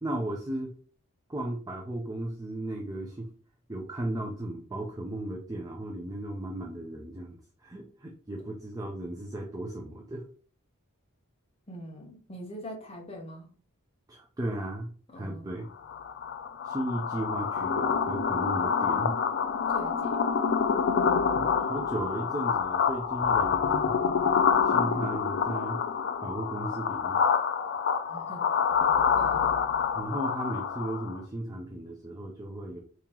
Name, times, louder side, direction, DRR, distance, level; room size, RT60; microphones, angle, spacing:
voice 1, 0.0-0.7 1.3-3.3 3.7-10.2 14.1-15.7 16.6-19.2 21.3-24.0 24.6-25.8 26.2-27.2 30.0-32.8, right 1 dB, 15° right, 0.4 m, -35 dB
voice 2, 11.7-13.5 15.1-15.5 19.7-20.2 24.7-25.1 28.1-28.4 29.2-29.5, equal, 25° left, 0.8 m, -43 dB
sound 1, 15.8-31.2, left 6 dB, 50° left, 0.4 m, -27 dB
3.6 x 2.9 x 2.9 m
head